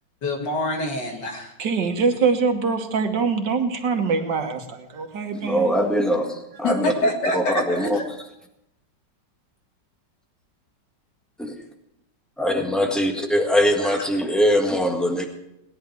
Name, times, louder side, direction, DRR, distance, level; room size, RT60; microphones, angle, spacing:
voice 1, 0.2-1.5 6.6-8.0 13.8-13.9, left 1 dB, 70° left, 1 dB, 2.7 m, -25 dB
voice 2, 1.6-5.9, right 5 dB, 70° right, 5 dB, 1.9 m, -24 dB
voice 3, 5.4-6.9 7.3-8.0 11.4-11.6 12.4-15.2, equal, ahead, 3 dB, 1.5 m, -22 dB
18.5 x 10.5 x 4.6 m, 0.85 s
omnidirectional pair, 1.9 m